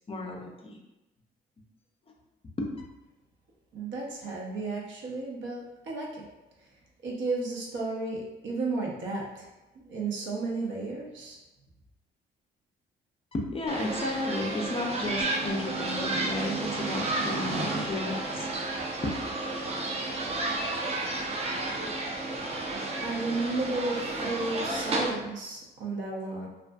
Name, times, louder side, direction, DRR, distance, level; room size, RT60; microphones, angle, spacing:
voice 1, 0.1-0.8 2.6-2.7 13.3-18.5 19.0-19.2, left 2 dB, 30° left, 0 dB, 0.4 m, -33 dB
voice 2, 3.7-6.3 7.0-9.5 9.7-11.4 23.0-26.5, right 3 dB, 70° right, -2 dB, 0.7 m, -33 dB
sound 1, 13.7-25.1, right 2 dB, 30° right, 0.5 m, -31 dB
2.5 x 2.4 x 2.2 m, 1.0 s
cardioid pair, 90°, 20 cm